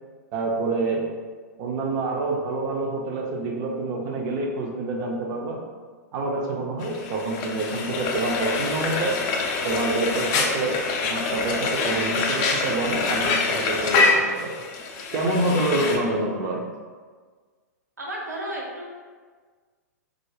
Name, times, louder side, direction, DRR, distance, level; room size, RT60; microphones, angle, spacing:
voice 1, 0.3-1.1 1.6-5.6 6.1-9.2 9.6-14.7 15.1-16.7, right 2 dB, 35° right, 0 dB, 0.5 m, -27 dB
Frying (food), 6.8-16.0, left 4 dB, 35° left, 0.4 m, -25 dB
voice 2, 18.0-18.9, right 1 dB, 80° right, -3 dB, 0.7 m, -34 dB
2.4 x 2.1 x 3.2 m, 1.5 s
figure-of-eight pair, 105°, 9 cm